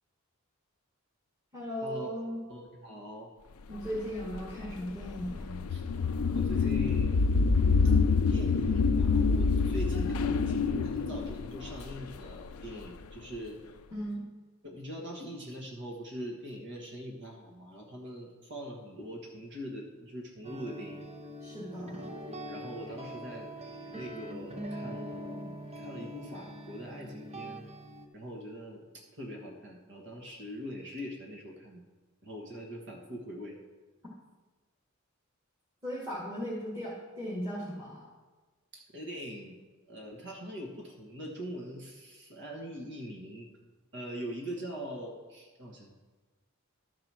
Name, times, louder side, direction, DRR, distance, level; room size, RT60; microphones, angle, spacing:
voice 1, 1.5-2.4 3.7-5.7 13.9-14.2 21.4-22.1 35.8-38.0, equal, 15° right, -7 dB, 2.0 m, -37 dB
voice 2, 2.5-3.3 5.7-5.8 6.3-7.6 7.8-7.9 8.3-13.6 14.6-21.1 22.1-27.7 28.1-31.8 32.2-33.6 38.7-39.6 39.9-43.5 43.9-45.9, equal, 55° right, 0 dB, 1.4 m, -42 dB
sound 1, 3.9-12.8, left 4 dB, 85° left, 0.4 m, -27 dB
sound 2, 20.4-28.1, right 1 dB, 30° right, 0.9 m, -43 dB
12.0 x 4.9 x 6.1 m, 1.3 s
head